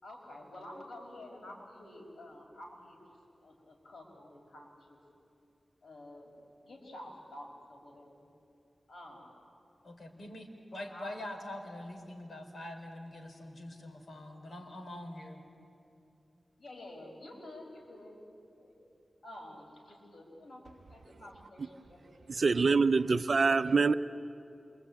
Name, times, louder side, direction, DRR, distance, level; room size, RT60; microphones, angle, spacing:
voice 1, 0.0-3.2 3.4-5.0 5.8-6.3 6.6-8.3 8.9-9.5 10.8-11.3 16.6-18.1 18.5-18.7 19.2-22.7, left 1 dB, 75° left, 5.6 m, -50 dB
voice 2, 9.8-10.5 10.7-15.4, left 1 dB, 60° left, 4.1 m, -44 dB
voice 3, 22.3-23.9, right 4 dB, 65° right, 0.7 m, -25 dB
27.5 x 23.5 x 8.9 m
wide cardioid pair, 65°, 0 cm